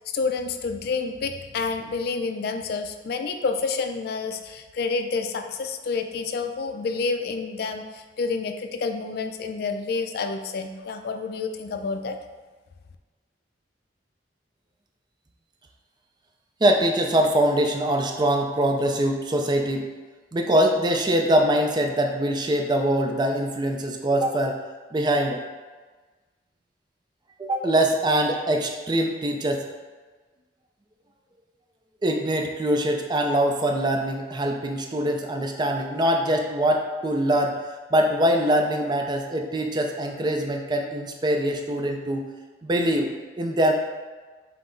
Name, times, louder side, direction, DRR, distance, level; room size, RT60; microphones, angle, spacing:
voice 1, 0.1-12.2, left 4 dB, 60° left, 6 dB, 0.3 m, -29 dB
voice 2, 16.6-19.9 20.3-24.5 24.9-25.4 27.4-29.6 32.0-37.6 37.9-42.2 42.6-43.1 43.4-43.7, right 1 dB, 25° right, 3 dB, 0.4 m, -23 dB
5.6 x 2.0 x 3.8 m, 1.3 s
head